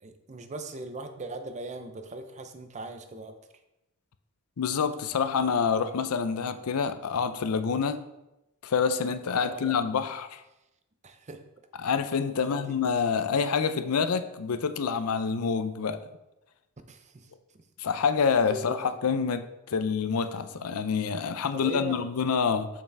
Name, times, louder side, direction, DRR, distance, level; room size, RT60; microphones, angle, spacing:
voice 1, 0.0-3.4 9.3-9.8 11.0-11.4 12.4-12.7 16.9-17.6 18.5-18.9 21.5-22.0, right 2 dB, 30° right, 7 dB, 0.6 m, -40 dB
voice 2, 4.6-8.0 8.6-10.4 11.8-16.0 17.8-22.7, left 6 dB, 80° left, 10 dB, 0.5 m, -27 dB
6.8 x 5.6 x 3.4 m, 0.93 s
head